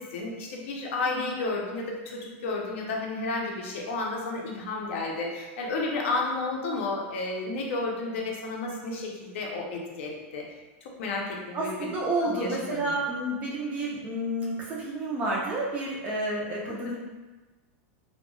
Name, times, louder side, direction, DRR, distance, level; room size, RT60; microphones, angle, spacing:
voice 1, 0.0-10.5 10.8-11.9 12.2-12.9 16.7-17.0, left 3 dB, 60° left, -1 dB, 0.5 m, -32 dB
voice 2, 11.5-17.0, right 1 dB, 20° right, -4 dB, 0.4 m, -30 dB
2.2 x 2.0 x 3.0 m, 1.2 s
supercardioid pair, 180°, 7 cm